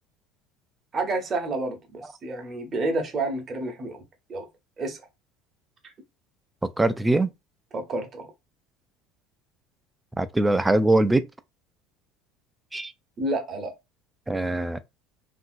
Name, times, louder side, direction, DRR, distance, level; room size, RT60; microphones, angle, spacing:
voice 1, 0.9-4.0 4.3-4.5 4.8-5.0 7.7-8.3 13.2-13.7, right 2 dB, 35° right, 0.8 m, -29 dB
voice 2, 6.8-7.3 10.2-11.2 12.7-12.9 14.3-14.8, right 2 dB, 10° right, 0.3 m, -22 dB
2.7 x 2.6 x 2.5 m
figure-of-eight pair, 65°, 0 cm